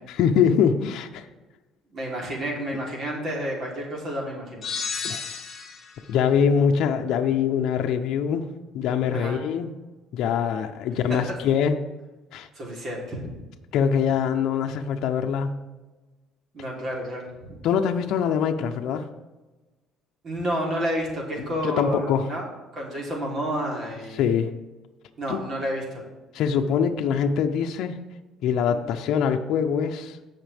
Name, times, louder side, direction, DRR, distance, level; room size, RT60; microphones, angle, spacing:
voice 1, 0.1-1.3 5.0-5.3 6.1-8.5 8.7-9.7 10.1-11.8 12.3-12.5 13.7-15.5 17.6-19.1 21.4-22.3 24.2-24.5 25.3-25.5 26.3-28.0 28.4-30.2, left 7 dB, 65° left, 4 dB, 0.7 m, -23 dB
voice 2, 1.9-4.7 9.1-9.4 10.9-11.0 12.5-13.3 16.5-17.6 20.2-22.5 22.7-24.4 25.2-26.0 28.7-28.8, equal, 40° right, -2 dB, 3.4 m, -30 dB
sound 1, 4.6-6.0, left 5 dB, 30° left, 1.6 m, -32 dB
17.0 x 5.8 x 3.5 m, 1.2 s
cardioid pair, 130°, 0 cm